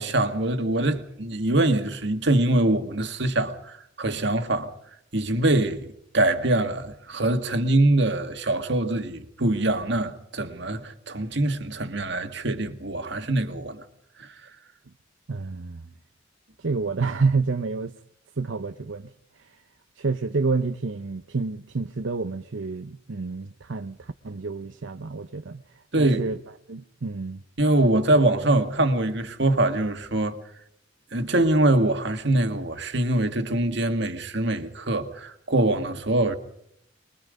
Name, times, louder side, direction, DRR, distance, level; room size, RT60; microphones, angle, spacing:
voice 1, 0.0-4.7 5.1-5.9 6.1-13.8 14.2-14.3 25.9-26.2 27.6-30.4 31.1-36.4, right 1 dB, 65° right, 2.0 m, -23 dB
voice 2, 15.3-15.9 16.6-18.0 18.4-19.1 19.4-19.6 20.0-26.4 26.7-27.4, right 4 dB, 85° right, 0.8 m, -29 dB
25.0 x 22.0 x 5.2 m
head